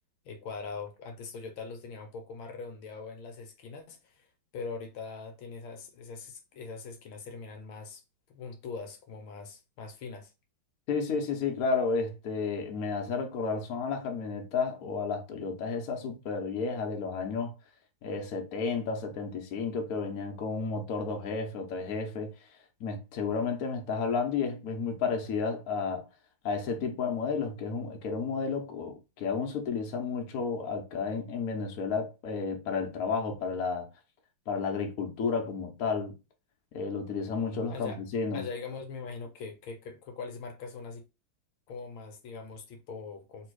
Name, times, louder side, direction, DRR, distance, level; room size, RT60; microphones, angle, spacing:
voice 1, 0.2-4.3 4.5-8.0 8.3-10.3 37.7-38.0 38.3-41.0 41.7-43.5, left 4 dB, 75° left, 1.5 m, -42 dB
voice 2, 10.9-17.5 18.0-22.5 22.8-26.1 26.4-33.9 34.5-36.1 36.7-38.4, left 5 dB, 55° left, 1.2 m, -32 dB
3.4 x 3.0 x 4.6 m
omnidirectional pair, 2.3 m